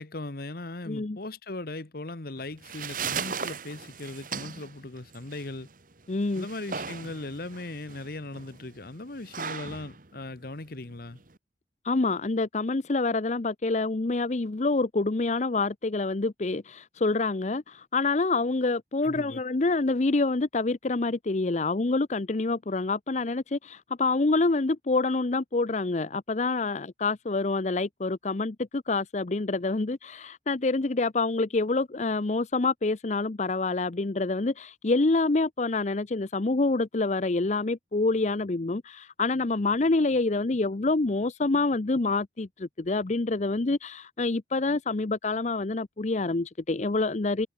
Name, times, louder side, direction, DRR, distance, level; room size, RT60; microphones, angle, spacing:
voice 1, 0.0-5.7 6.3-11.2 19.0-19.4, left 2 dB, 55° left, 1.3 m, -38 dB
voice 2, 0.9-1.2 6.1-6.5 11.8-47.5, left 3 dB, 40° left, 0.6 m, -27 dB
sound 1, 2.4-11.4, right 6 dB, 50° right, 1.9 m, -38 dB
head